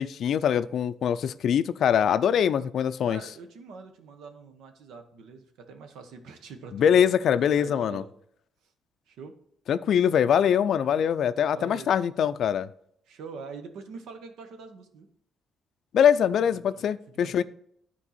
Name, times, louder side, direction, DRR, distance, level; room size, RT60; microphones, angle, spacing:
voice 1, 0.0-3.2 6.7-8.0 9.7-12.7 15.9-17.4, left 8 dB, 65° left, 0.4 m, -23 dB
voice 2, 3.0-7.0 7.4-8.1 9.1-9.4 11.5-12.0 13.1-15.1 16.5-17.4, right 4 dB, 85° right, 1.0 m, -44 dB
9.9 x 4.5 x 4.2 m
cardioid pair, 90°, 0 cm